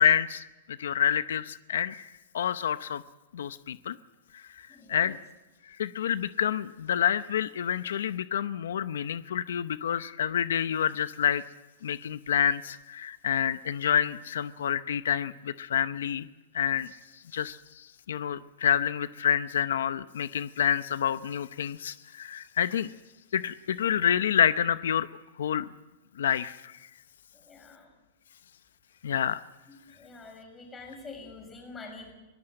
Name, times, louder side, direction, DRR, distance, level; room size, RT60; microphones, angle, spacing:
voice 1, 0.0-3.0 3.3-4.0 4.3-5.2 5.7-11.4 11.8-16.3 16.5-16.9 17.3-22.9 23.3-25.1 25.4-25.7 26.2-26.7 29.0-29.4, left 9 dB, 90° left, 13 dB, 0.7 m, -28 dB
voice 2, 4.7-5.1 27.3-27.9 29.7-32.1, left 3 dB, 10° left, 2 dB, 6.1 m, -46 dB
22.5 x 18.5 x 7.8 m, 1.1 s
supercardioid pair, 160°, 0 cm